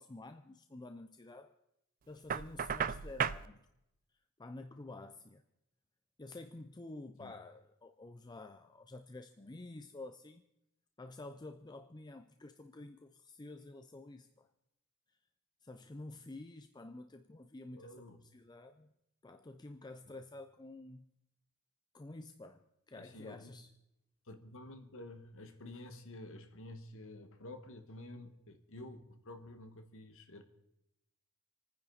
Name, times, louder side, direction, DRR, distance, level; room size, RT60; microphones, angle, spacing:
voice 1, 0.0-1.5 2.1-3.6 4.4-5.4 6.2-10.4 11.0-14.5 15.6-17.9 18.3-18.9 19.2-21.1 21.9-23.7, left 2 dB, 20° left, 0.5 m, -50 dB
Knock, 2.3-3.5, right 7 dB, 40° right, 0.4 m, -34 dB
voice 2, 17.7-18.2 22.9-23.6 24.2-30.4, left 1 dB, 60° left, 1.5 m, -50 dB
27.5 x 9.8 x 4.0 m
head